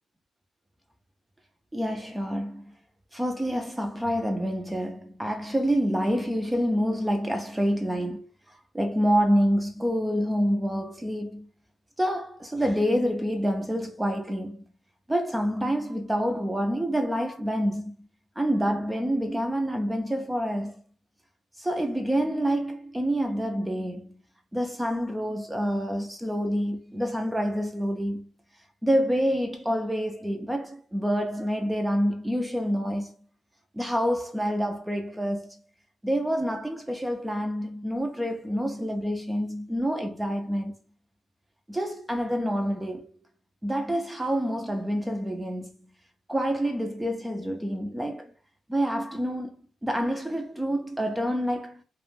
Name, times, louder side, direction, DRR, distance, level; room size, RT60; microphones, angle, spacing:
voice 1, 1.7-2.7 3.1-11.5 12.0-14.6 15.1-17.9 18.4-20.8 21.6-24.2 24.5-28.3 28.8-33.1 33.7-35.6 36.0-40.7 41.7-43.1 43.6-45.7 46.3-48.3 48.7-49.6 49.8-51.8, equal, 10° right, 0.3 m, -27 dB
2.3 x 2.1 x 3.2 m
cardioid pair, 120°, 0 cm